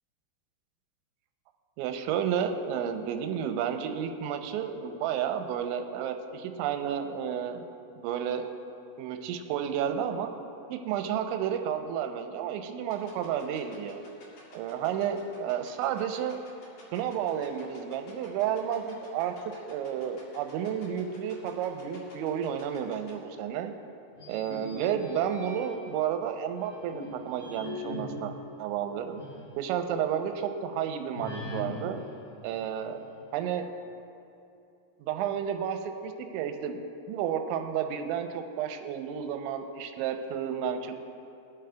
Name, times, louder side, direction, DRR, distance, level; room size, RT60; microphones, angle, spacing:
voice 1, 1.8-7.6 8.0-8.5 9.0-10.3 10.7-14.0 14.5-16.4 16.9-19.3 19.6-23.7 24.3-28.3 28.6-29.2 29.6-32.0 32.4-33.0 33.3-33.7 35.0-36.8 37.1-40.9, right 8 dB, 80° right, 6 dB, 2.9 m, -31 dB
sound 1, 12.9-23.1, left 4 dB, 50° left, 3.0 m, -52 dB
sound 2, 24.1-26.0 26.6-29.6 29.9-30.0 31.1-33.2, left 1 dB, 80° left, 0.7 m, -41 dB
22.0 x 8.7 x 2.3 m, 2.7 s
omnidirectional pair, 5.5 m